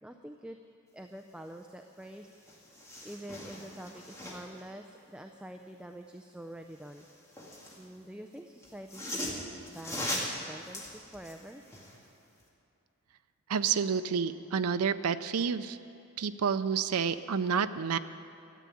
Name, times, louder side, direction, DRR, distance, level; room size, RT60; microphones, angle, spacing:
voice 1, 0.0-0.6 0.9-2.6 3.0-7.1 7.8-9.3 9.7-11.6, right 1 dB, 5° right, 5 dB, 0.4 m, -46 dB
sound 1, 2.0-2.1 2.4-4.6 6.8-7.8 8.6-12.0 12.4-12.5, left 1 dB, 15° left, 2.0 m, -40 dB
voice 2, 13.5-15.8 16.2-18.0, right 6 dB, 80° right, 11 dB, 0.5 m, -29 dB
13.0 x 8.3 x 10.0 m, 2.7 s
head